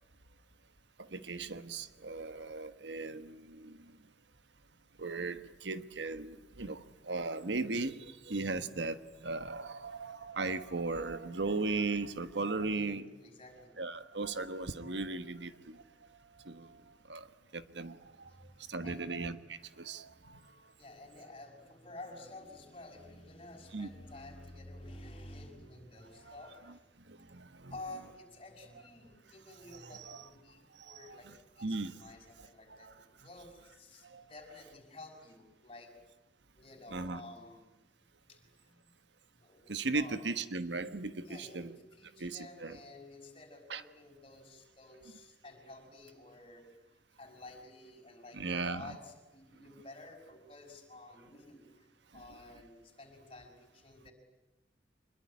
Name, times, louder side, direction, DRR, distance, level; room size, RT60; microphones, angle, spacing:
voice 1, 1.0-3.8 5.0-13.0 13.8-15.8 16.4-16.7 17.1-17.3 17.5-18.0 18.7-20.4 23.7-23.9 26.3-26.4 27.1-27.7 30.1-30.2 30.9-31.2 31.6-31.9 32.8-32.9 34.1-34.2 36.9-37.2 39.7-41.7 42.2-42.8 43.7-43.8 48.3-48.9, right 3 dB, 80° right, 11 dB, 1.3 m, -37 dB
voice 2, 12.5-13.7 18.2-19.2 20.2-20.3 20.7-26.9 27.7-35.9 36.5-37.6 38.3-38.9 39.4-40.2 41.2-51.9 52.1-54.1, left 2 dB, 30° left, 2 dB, 5.8 m, -51 dB
25.5 x 21.5 x 10.0 m, 1.1 s
head